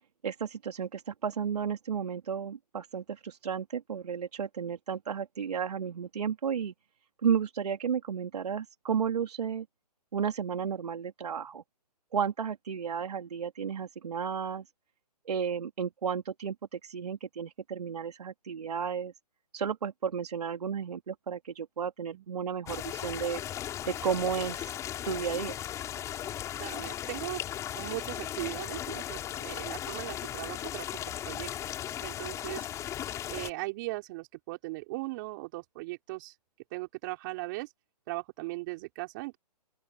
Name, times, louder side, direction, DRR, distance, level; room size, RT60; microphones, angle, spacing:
voice 1, 0.2-6.7 7.2-9.7 10.1-11.6 12.1-14.6 15.3-19.1 19.5-23.4 23.9-24.7 25.0-25.6, right 7 dB, 65° right, 3.5 m, -33 dB
sound 1, 22.7-33.5, left 11 dB, 15° left, 3.9 m, -37 dB
voice 2, 26.6-27.4 27.7-30.9 31.2-31.5 32.0-32.7 33.3-36.3 36.7-37.7 38.1-39.4, right 22 dB, 30° right, 4.4 m, -38 dB
open air
hypercardioid pair, 155°, 21 cm